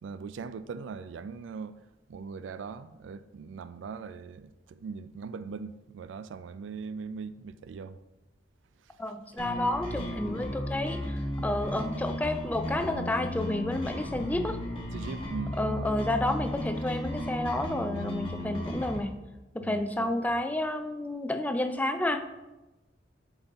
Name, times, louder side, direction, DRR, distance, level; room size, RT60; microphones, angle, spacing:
voice 1, 0.0-1.8 2.1-8.0 14.9-15.9 19.6-20.3, right 5 dB, 90° right, 0.3 m, -40 dB
voice 2, 9.0-14.6 15.6-19.2 19.5-22.2, left 1 dB, 10° left, 0.3 m, -30 dB
sound 1, 9.4-19.0, equal, 30° left, 1.3 m, -35 dB
7.6 x 4.1 x 3.5 m
head